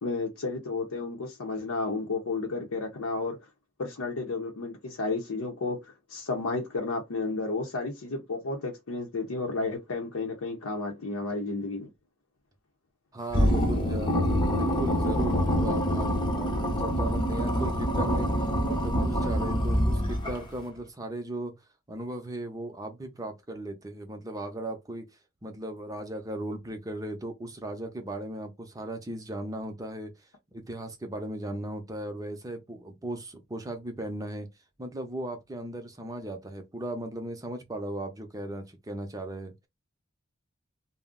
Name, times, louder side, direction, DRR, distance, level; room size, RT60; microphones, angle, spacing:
voice 1, 0.0-3.4 3.8-11.9, left 3 dB, 80° left, 0.7 m, -32 dB
voice 2, 13.1-16.1 16.4-18.3 18.6-21.5 21.9-25.1 25.4-30.1 30.5-34.5 34.8-39.5, right 1 dB, 15° right, 0.6 m, -37 dB
sound 1, 13.3-20.6, equal, 20° left, 0.7 m, -26 dB
2.4 x 2.0 x 3.6 m
head